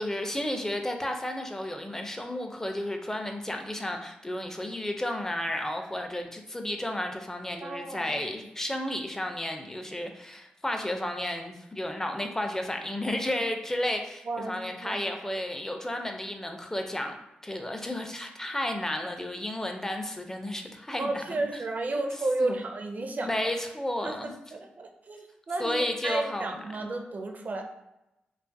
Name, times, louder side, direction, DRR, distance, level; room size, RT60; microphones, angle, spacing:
voice 1, 0.0-17.2 17.4-21.5 22.4-22.6 23.2-24.3 25.6-26.5, left 1 dB, 15° left, 4 dB, 0.4 m, -32 dB
voice 2, 7.6-8.1 14.2-15.0 21.0-23.3 24.0-27.6, right 2 dB, 50° right, 3 dB, 0.4 m, -32 dB
2.4 x 2.4 x 2.5 m, 0.91 s
cardioid pair, 60°, 4 cm